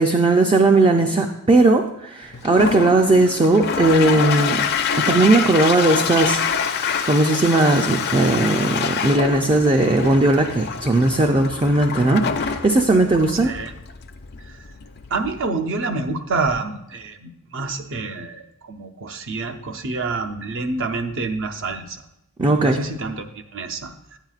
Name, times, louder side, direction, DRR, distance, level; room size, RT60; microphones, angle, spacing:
voice 1, 0.0-4.6 5.1-6.4 7.0-13.5 22.4-22.8, right 2 dB, 25° right, 4 dB, 0.4 m, -17 dB
Toilet flush, 2.3-15.5, left 6 dB, 50° left, 0.5 m, -26 dB
voice 2, 13.4-13.7 15.1-22.0 22.6-23.9, right 3 dB, 60° right, 7 dB, 0.7 m, -27 dB
9.7 x 9.0 x 2.4 m, 0.84 s
head